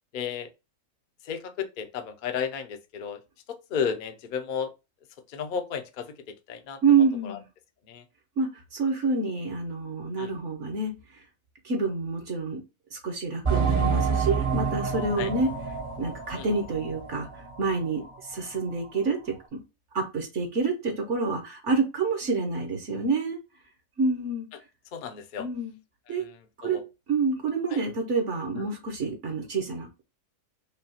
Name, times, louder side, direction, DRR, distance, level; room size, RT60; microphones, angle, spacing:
voice 1, 0.1-0.5 1.2-3.2 3.5-4.7 5.3-6.8 7.2-7.4 7.9-8.0 10.2-10.3 15.2-15.3 16.4-16.5 24.9-25.5 26.1-26.4 26.6-26.8 27.7-27.8, left 7 dB, 50° left, 0.6 m, -33 dB
voice 2, 6.8-7.4 8.4-10.9 11.6-12.6 12.9-15.5 16.0-17.3 17.6-18.0 18.3-19.6 19.9-23.4 24.0-24.5 25.4-25.7 26.1-26.2 26.6-26.8 27.1-30.0, right 4 dB, 60° right, 1.2 m, -27 dB
sound 1, 13.4-17.7 18.0-18.1 18.7-18.8, right 6 dB, 30° right, 0.7 m, -28 dB
5.4 x 2.3 x 2.8 m
omnidirectional pair, 1.5 m